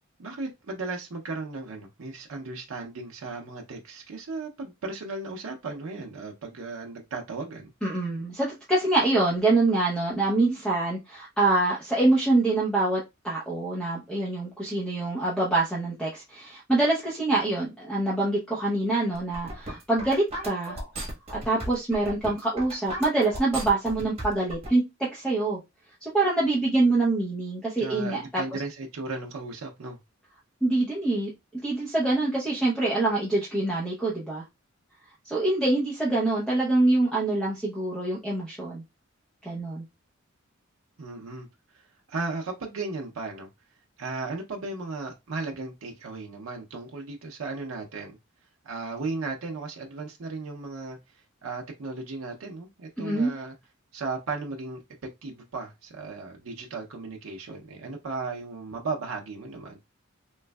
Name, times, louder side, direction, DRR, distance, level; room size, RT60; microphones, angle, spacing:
voice 1, 0.2-7.7 27.8-30.0 41.0-41.5 41.7-43.5 44.0-48.1 48.6-53.5 53.9-54.8 55.2-59.8, right 3 dB, 80° right, 0.6 m, -36 dB
voice 2, 7.8-20.8 21.4-25.6 26.0-28.6 30.6-34.4 35.2-38.8 39.4-39.8 53.0-53.3, right 2 dB, 5° left, 0.7 m, -25 dB
sound 1, 19.1-24.7, right 1 dB, 30° right, 1.3 m, -36 dB
3.3 x 3.1 x 2.2 m
head